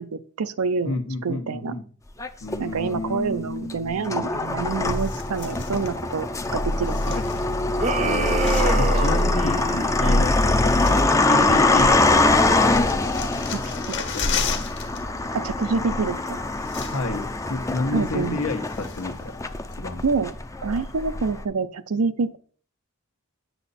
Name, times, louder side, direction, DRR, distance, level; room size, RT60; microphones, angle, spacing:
voice 1, 0.0-1.8 2.6-7.0 10.0-10.2 11.3-11.5 13.5-13.6 15.3-16.4 17.9-18.4 20.0-20.3 20.6-22.4, right 4 dB, 75° right, 10 dB, 0.5 m, -27 dB
voice 2, 0.8-1.8 2.4-4.2 7.0-7.3 8.0-12.3 13.9-14.5 16.9-19.3 19.8-20.0, left 2 dB, 75° left, 7 dB, 1.2 m, -31 dB
sound 1, 2.2-2.9 3.6-21.4, left 2 dB, 15° left, 0.5 m, -23 dB
sound 2, 4.9-5.9 6.7-7.8 8.0-9.3 10.1-10.2 10.5-11.7 12.0-15.0 15.3-15.5 16.2-16.3 16.5-17.3 17.6-17.7 18.2-19.2 19.7-19.8, left 7 dB, 55° left, 1.5 m, -35 dB
sound 3, 7.8-9.9, right 4 dB, 30° right, 0.6 m, -26 dB
9.1 x 6.7 x 4.1 m, 0.44 s
head